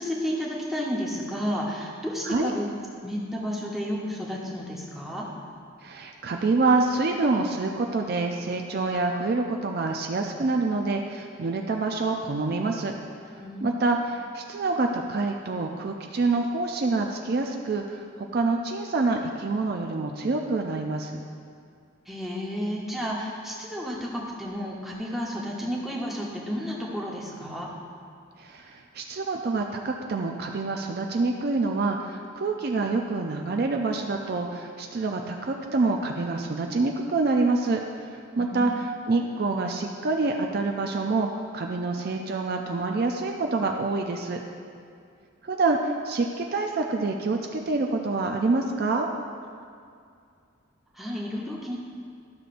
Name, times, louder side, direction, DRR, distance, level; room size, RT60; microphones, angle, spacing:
voice 1, 0.0-2.7 3.0-5.2 13.4-13.9 22.1-27.7 38.4-38.8 50.9-51.8, equal, ahead, -4 dB, 0.9 m, -32 dB
voice 2, 5.8-12.9 13.6-21.2 28.4-41.3 41.5-44.4 45.4-49.1, right 3 dB, 50° right, 2 dB, 0.4 m, -26 dB
12.0 x 6.4 x 2.5 m, 2.3 s
head